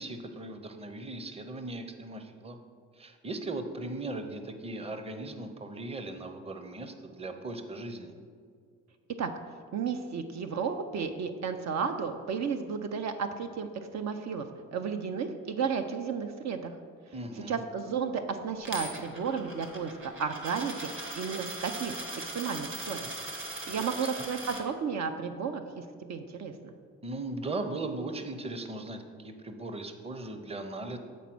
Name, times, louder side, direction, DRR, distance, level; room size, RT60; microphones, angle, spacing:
voice 1, 0.0-2.6 2.9-8.1 17.1-17.6 23.7-24.2 27.0-31.0, right 2 dB, 20° right, 7 dB, 0.7 m, -38 dB
voice 2, 9.7-14.4 14.7-16.7 17.5-23.1 23.7-26.7, right 6 dB, 65° right, 7 dB, 0.6 m, -33 dB
Coin (dropping), 18.7-24.6, right 2 dB, 40° right, 1.3 m, -40 dB
8.3 x 4.2 x 6.0 m, 2.1 s
cardioid pair, 90°, 30 cm